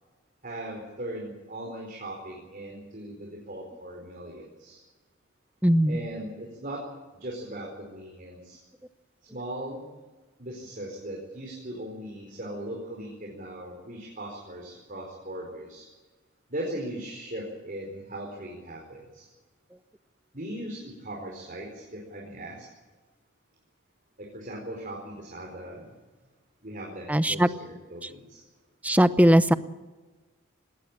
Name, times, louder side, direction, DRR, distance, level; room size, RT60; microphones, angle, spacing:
voice 1, 0.4-4.8 5.9-6.8 7.1-8.6 9.3-9.8 10.4-15.9 16.5-19.3 20.3-22.7 24.2-25.9 26.6-28.4, right 1 dB, 45° right, -1 dB, 4.6 m, -39 dB
voice 2, 5.6-6.0 27.1-27.5 28.0-28.1 28.8-29.5, equal, 5° right, 13 dB, 0.7 m, -19 dB
20.0 x 17.5 x 8.8 m, 1.3 s
head